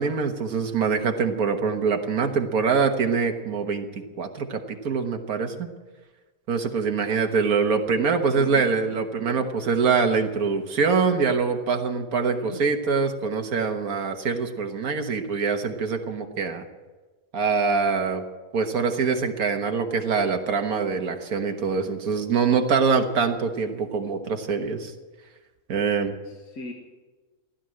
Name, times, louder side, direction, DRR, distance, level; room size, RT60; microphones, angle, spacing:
voice 1, 0.0-3.9 4.2-5.7 6.5-16.6 17.3-18.2 18.5-24.9 25.7-26.1, right 5 dB, 85° right, 5 dB, 1.8 m, -24 dB
voice 2, 7.9-9.5 12.2-12.6 26.2-26.7, left 3 dB, 85° left, 1 dB, 2.1 m, -41 dB
16.0 x 12.0 x 7.7 m, 1.2 s
omnidirectional pair, 1.5 m